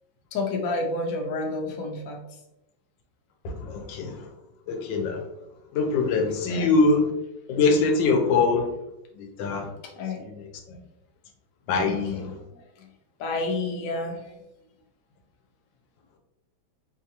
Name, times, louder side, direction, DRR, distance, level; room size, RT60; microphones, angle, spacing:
voice 1, 0.3-2.2 6.5-6.8 9.8-10.2 11.9-12.9 13.2-14.4, left 2 dB, 60° left, 1 dB, 0.9 m, -30 dB
voice 2, 3.4-4.1 4.7-5.2 5.7-7.1 7.5-8.7 9.2-9.7 11.7-12.3, left 3 dB, 90° left, 4 dB, 1.4 m, -23 dB
4.6 x 2.4 x 2.7 m, 0.91 s
omnidirectional pair, 2.0 m